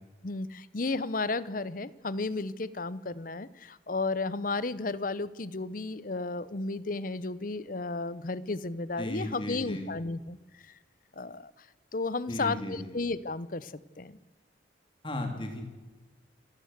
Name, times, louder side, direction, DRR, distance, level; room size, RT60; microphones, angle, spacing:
voice 1, 0.2-10.7 11.2-11.7 11.9-14.2, left 3 dB, 45° left, 18 dB, 0.8 m, -33 dB
voice 2, 9.0-9.9 12.3-12.9 15.0-15.6, left 1 dB, 25° left, 4 dB, 3.5 m, -35 dB
27.5 x 13.5 x 8.1 m, 1.3 s
head